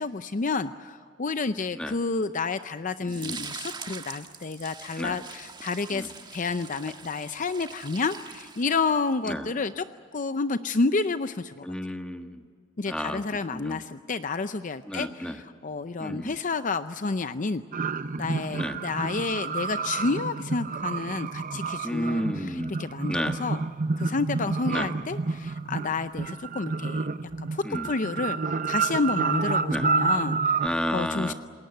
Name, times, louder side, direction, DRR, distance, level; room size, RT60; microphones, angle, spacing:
voice 1, 0.0-9.9 10.1-11.7 12.8-17.6 18.2-23.6 24.0-27.1 27.4-30.4 30.9-31.3, left 4 dB, 40° left, 11 dB, 0.6 m, -30 dB
voice 2, 3.0-3.5 5.0-5.2 5.9-6.1 9.2-9.5 11.6-12.4 12.9-13.2 13.5-13.8 14.9-15.4 16.0-16.3 18.5-18.8 21.8-22.7 23.1-23.4 24.7-24.9 27.6-27.9 29.7-29.9 30.6-31.3, equal, 5° left, 6 dB, 1.4 m, -31 dB
sound 1, 3.1-9.1, right 5 dB, 25° right, 1.4 m, -42 dB
sound 2, 17.7-30.7, right 4 dB, 45° right, 0.8 m, -29 dB
27.5 x 20.5 x 8.0 m, 2.1 s
head